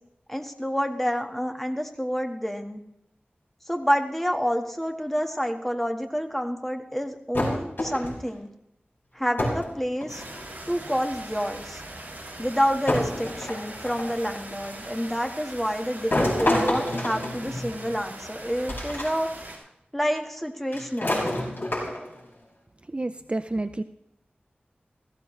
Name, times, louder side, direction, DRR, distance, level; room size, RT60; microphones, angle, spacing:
voice 1, 0.3-2.8 3.7-8.5 9.1-10.2 10.7-11.8 12.4-19.3 19.9-21.2, equal, 5° left, 4 dB, 1.5 m, -28 dB
sound 1, 7.3-8.3 9.4-9.7 10.0-10.6 11.7-11.8 12.9-14.2 16.1-18.0 18.7-19.1 19.5-19.6 20.7-22.2, left 1 dB, 70° left, 5.6 m, -27 dB
sound 2, 10.1-19.6, right 1 dB, 50° right, 6.1 m, -41 dB
voice 2, 22.9-23.8, right 2 dB, 30° right, 10 dB, 0.5 m, -29 dB
17.5 x 15.5 x 3.2 m, 0.82 s
wide cardioid pair, 60°, 4 cm